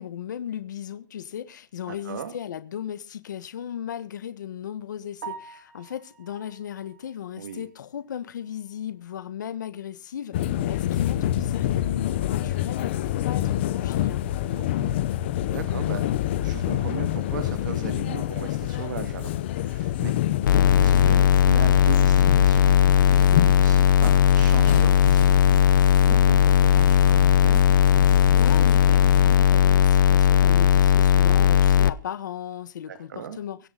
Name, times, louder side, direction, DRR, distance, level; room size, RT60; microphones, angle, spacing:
voice 1, 0.0-14.3 28.4-33.7, left 9 dB, 70° left, 1.5 m, -36 dB
voice 2, 1.9-2.3 7.4-7.6 14.6-15.0 15.4-16.0 16.4-19.3 19.6-20.1 20.8-27.7 32.9-33.4, right 7 dB, 75° right, 2.2 m, -37 dB
Piano, 5.2-9.2 9.5-9.7 10.1-10.2 10.6-10.7 13.8-13.9 22.4-22.6, right 7 dB, 45° right, 3.1 m, -46 dB
sound 1, 10.3-29.4, left 12 dB, 35° left, 0.8 m, -28 dB
sound 2, 20.5-31.9, left 9 dB, 85° left, 0.8 m, -17 dB
23.5 x 8.0 x 4.0 m
hypercardioid pair, 180°, 10 cm